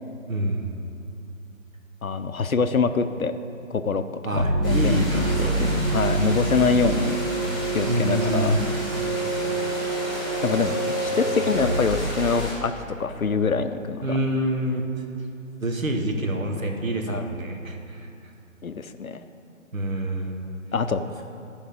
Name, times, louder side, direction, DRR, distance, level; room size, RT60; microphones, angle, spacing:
voice 1, 0.3-0.7 4.2-5.8 7.9-8.7 11.1-11.2 14.0-14.8 15.6-18.1 19.7-20.4, right 1 dB, 75° right, 3 dB, 1.3 m, -26 dB
voice 2, 2.0-3.3 3.7-4.0 4.3-7.2 7.7-8.6 10.4-12.7 13.0-14.2 17.1-17.2 18.6-19.2 20.7-21.0, left 4 dB, 85° left, 10 dB, 0.7 m, -25 dB
sound 1, 4.3-13.0, right 2 dB, 35° right, 1.5 m, -27 dB
sound 2, 4.6-12.5, equal, ahead, 2.3 m, -34 dB
11.5 x 5.3 x 5.1 m, 2.7 s
figure-of-eight pair, 145°, 41 cm